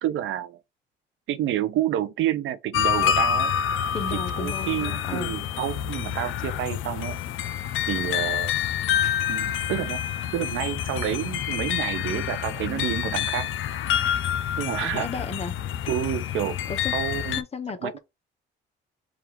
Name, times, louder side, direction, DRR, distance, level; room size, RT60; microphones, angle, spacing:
voice 1, 0.0-0.6 1.3-3.5 4.1-7.2 7.9-8.5 9.3-10.0 10.3-13.5 14.6-15.1 15.9-16.6 16.9-17.4 17.8-18.0, right 11 dB, 80° right, 0.5 m, -29 dB
sound 1, 2.7-17.4, left 9 dB, 80° left, 0.5 m, -27 dB
voice 2, 3.9-5.3 14.8-15.6 16.7-16.9 17.4-18.0, left 4 dB, 30° left, 0.7 m, -34 dB
3.5 x 2.4 x 4.4 m
cardioid pair, 90°, 20 cm